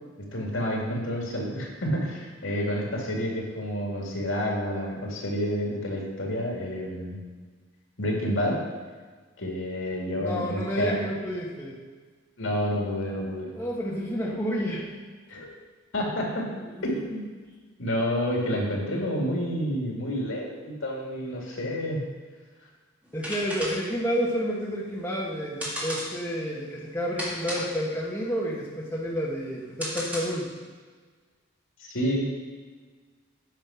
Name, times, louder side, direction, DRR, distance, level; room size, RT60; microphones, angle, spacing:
voice 1, 0.3-7.2 8.0-8.6 9.4-11.0 12.4-13.5 15.3-15.5 15.9-16.5 16.8-17.2 17.8-22.0 31.8-32.2, equal, 80° left, -2 dB, 2.3 m, -29 dB
voice 2, 10.2-11.8 13.5-14.9 16.6-16.7 23.1-30.5, equal, 10° left, -5 dB, 1.3 m, -30 dB
sound 1, 23.0-30.6, equal, 5° right, 1.7 m, -36 dB
9.2 x 5.7 x 5.7 m, 1.4 s
head